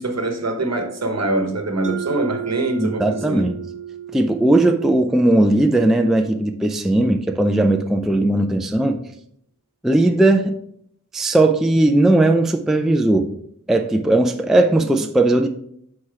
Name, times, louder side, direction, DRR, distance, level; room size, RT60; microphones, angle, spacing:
voice 1, 0.0-3.4, right 2 dB, 55° right, 1.1 m, -24 dB
Mallet percussion, 1.8-6.4, right 10 dB, 90° right, 0.6 m, -34 dB
voice 2, 2.8-3.5 4.1-9.0 9.8-10.5 11.1-13.3 13.7-15.5, right 1 dB, ahead, 0.4 m, -17 dB
6.5 x 4.3 x 4.7 m
wide cardioid pair, 100°, 31 cm